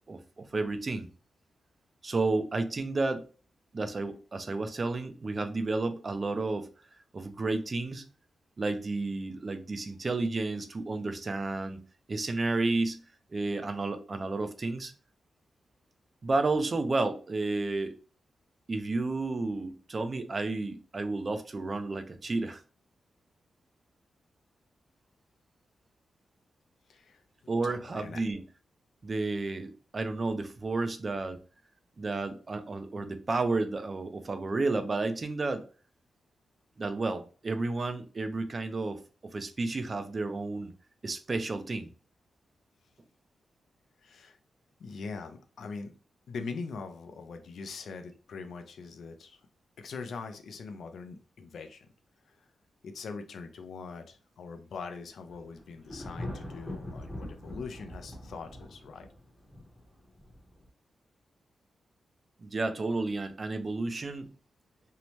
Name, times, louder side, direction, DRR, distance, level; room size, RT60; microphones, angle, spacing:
voice 1, 0.1-1.1 2.0-3.2 3.7-6.7 7.1-8.0 8.6-11.8 12.1-13.0 13.3-14.9 16.2-17.9 18.7-22.6 27.5-28.4 29.0-31.4 32.0-35.6 36.8-39.0 39.3-40.7 41.0-41.9 62.4-64.3, right 3 dB, 35° right, 0.4 m, -31 dB
voice 2, 26.9-27.2 27.6-28.2 44.0-44.4 44.8-45.9 46.3-49.5 49.8-51.9 52.3-52.5 52.8-59.1, left 4 dB, 70° left, 0.4 m, -42 dB
Thunder, 55.3-60.7, left 1 dB, 15° left, 0.7 m, -42 dB
2.7 x 2.1 x 3.0 m
wide cardioid pair, 115°, 0 cm